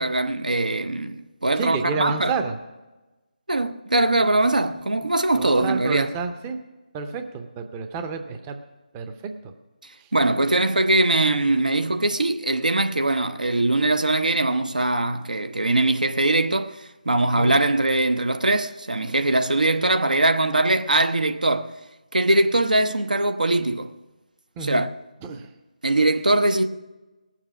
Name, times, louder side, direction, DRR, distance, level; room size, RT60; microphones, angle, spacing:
voice 1, 0.0-2.3 3.5-6.1 10.1-16.8 17.1-21.7 22.1-23.9 24.6-24.9 25.8-26.7, right 2 dB, 80° right, 0.8 m, -21 dB
voice 2, 1.6-2.6 5.3-6.6 6.9-8.6 8.9-9.5 10.0-10.1 17.3-17.6 24.6-24.8 25.2-25.5, right 5 dB, 15° right, 0.6 m, -30 dB
18.5 x 7.3 x 6.0 m
figure-of-eight pair, 155°, 4 cm